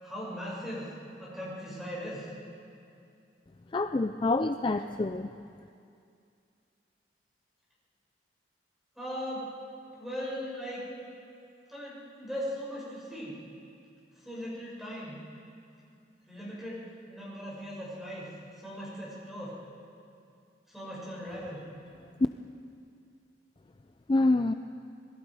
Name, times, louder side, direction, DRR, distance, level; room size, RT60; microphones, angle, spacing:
voice 1, 0.0-0.9 1.2-2.3 9.0-9.5 10.0-10.8 11.7-13.4 14.2-15.2 16.3-18.3 18.6-19.5 20.7-21.7, equal, ahead, -7 dB, 6.3 m, -39 dB
voice 2, 3.7-5.3 24.1-24.5, left 2 dB, 30° left, 8 dB, 0.4 m, -26 dB
26.5 x 21.0 x 4.9 m, 2.5 s
head